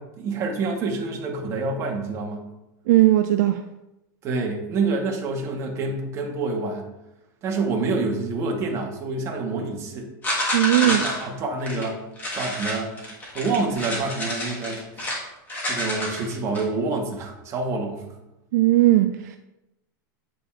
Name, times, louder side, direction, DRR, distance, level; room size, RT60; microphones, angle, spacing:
voice 1, 0.0-2.4 4.2-6.9 7.4-10.1 10.8-12.0 12.3-13.0 13.3-15.1 15.6-18.1, right 3 dB, 25° right, 1.0 m, -27 dB
voice 2, 2.9-3.6 10.5-11.0 18.5-19.4, right 15 dB, 60° right, 0.4 m, -18 dB
sound 1, 10.2-11.3 11.6-11.9 12.2-15.2 15.5-16.6, left 1 dB, 15° left, 1.4 m, -28 dB
8.4 x 5.0 x 2.4 m
supercardioid pair, 160°, 11 cm